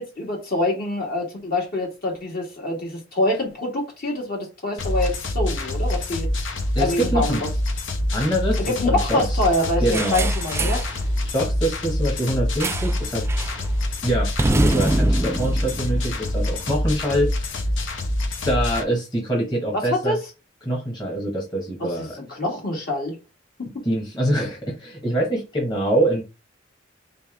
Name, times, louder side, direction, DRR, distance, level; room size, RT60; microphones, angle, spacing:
voice 1, 0.0-6.3 6.8-7.5 8.7-10.8 19.7-20.2 21.8-23.2, left 1 dB, 50° left, 1.8 m, -25 dB
sound 1, 4.8-18.8, left 1 dB, 70° left, 0.7 m, -25 dB
voice 2, 6.7-7.4 8.1-9.4 9.8-10.3 10.6-10.7 11.2-13.2 14.0-17.3 18.4-20.2 20.6-22.2 23.8-26.2, right 1 dB, 25° left, 1.3 m, -24 dB
sound 2, 9.9-10.9 12.6-13.0 13.3-13.6 14.4-16.7, right 2 dB, 15° right, 0.4 m, -25 dB
3.4 x 3.3 x 3.3 m
head